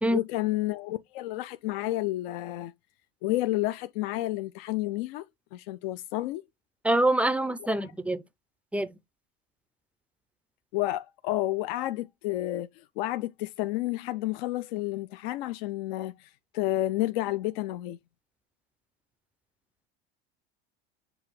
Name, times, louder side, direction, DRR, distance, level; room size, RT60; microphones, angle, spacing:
voice 1, 0.1-2.7 3.2-5.3 5.5-6.4 10.7-18.0, left 16 dB, 70° left, 0.4 m, -30 dB
voice 2, 6.8-8.2 8.7-8.9, right 1 dB, 5° right, 0.3 m, -25 dB
6.9 x 2.4 x 3.1 m
hypercardioid pair, 95°, 31 cm